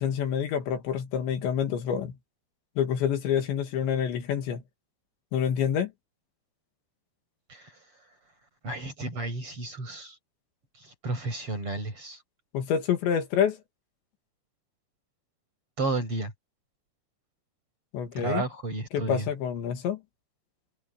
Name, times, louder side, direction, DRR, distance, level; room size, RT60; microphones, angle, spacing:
voice 1, 0.0-2.2 2.8-4.6 5.3-5.9 12.5-13.6 17.9-18.4 18.9-20.0, left 8 dB, 75° left, 4.3 m, -27 dB
voice 2, 8.6-10.2 10.8-12.2 15.8-16.3 18.2-19.3, right 2 dB, 30° right, 6.5 m, -32 dB
omnidirectional pair, 5.2 m